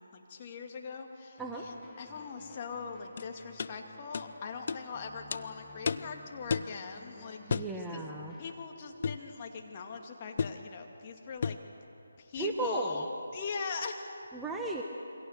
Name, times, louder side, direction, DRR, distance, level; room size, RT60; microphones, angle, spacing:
voice 1, 0.0-8.1 8.4-11.6 12.2-14.1, left 5 dB, 30° left, 2 dB, 2.3 m, -41 dB
sound 1, 1.4-8.5, left 4 dB, 10° left, 1.6 m, -56 dB
sound 2, 3.2-3.3 3.6-3.7 4.1-4.3 4.7-4.8 5.3-5.4 5.9-6.1 6.5-6.7 7.5-7.7 9.0-9.3 10.4-10.6 11.4-11.7, left 5 dB, 45° left, 0.6 m, -32 dB
voice 2, 7.5-8.3 12.4-13.0 14.3-14.8, right 2 dB, 5° right, 0 dB, 1.1 m, -35 dB
27.5 x 23.0 x 6.7 m, 2.9 s
figure-of-eight pair, 155°, 0 cm